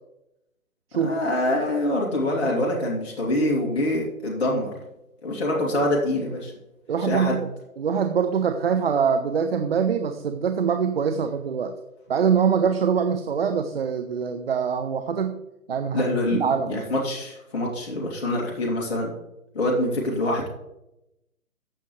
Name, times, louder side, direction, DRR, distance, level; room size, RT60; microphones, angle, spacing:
voice 1, 1.0-4.7 5.2-6.5 7.0-7.4 15.9-19.1 19.5-20.5, left 1 dB, 45° left, -3 dB, 2.7 m, -25 dB
voice 2, 6.9-7.5 7.8-11.8 12.1-15.4 15.7-16.8, right 6 dB, 45° right, 9 dB, 0.7 m, -24 dB
14.0 x 7.2 x 3.2 m, 0.90 s
figure-of-eight pair, 145°, 44 cm